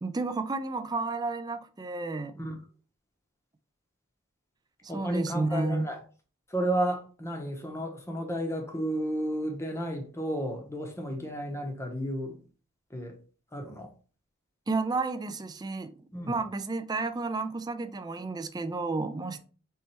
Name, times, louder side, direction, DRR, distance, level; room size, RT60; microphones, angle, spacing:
voice 1, 0.0-2.4 4.9-5.9 14.7-15.9 16.3-19.4, right 3 dB, 20° right, 0.4 m, -31 dB
voice 2, 4.9-6.0 6.5-12.4 12.9-13.2 13.5-13.9 16.1-16.3, right 1 dB, 15° left, 0.8 m, -32 dB
4.3 x 3.2 x 3.3 m
head